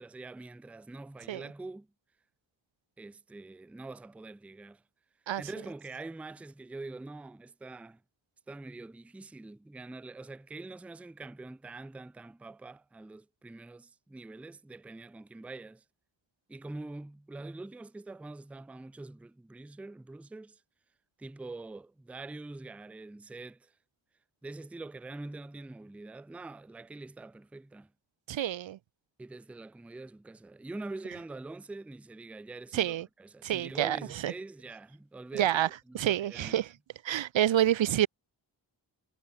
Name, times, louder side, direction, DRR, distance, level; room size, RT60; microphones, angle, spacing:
voice 1, 0.0-1.9 3.0-4.8 5.4-8.0 8.5-15.8 16.5-20.6 21.2-23.7 24.4-27.9 29.2-32.9 33.2-36.6, right 2 dB, 5° right, 0.4 m, -44 dB
voice 2, 28.3-28.8 32.7-33.1 33.4-34.3 35.3-35.7 35.9-36.7 37.0-38.1, right 12 dB, 85° right, 0.7 m, -28 dB
wide cardioid pair, 135°, 45 cm